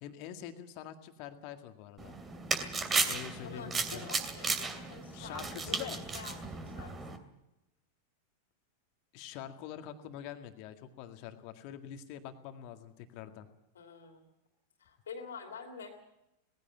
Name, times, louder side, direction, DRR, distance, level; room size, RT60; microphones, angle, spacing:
voice 1, 0.0-2.1 3.0-4.1 5.1-6.0 9.1-13.5, left 10 dB, 45° left, 7 dB, 2.0 m, -45 dB
sound 1, 2.0-7.2, right 4 dB, 20° right, 2.5 m, -35 dB
voice 2, 3.4-6.9 13.7-14.2 14.8-16.0, left 5 dB, 65° left, 3 dB, 3.0 m, -47 dB
20.0 x 16.0 x 8.9 m, 0.90 s
figure-of-eight pair, 90°, 0 cm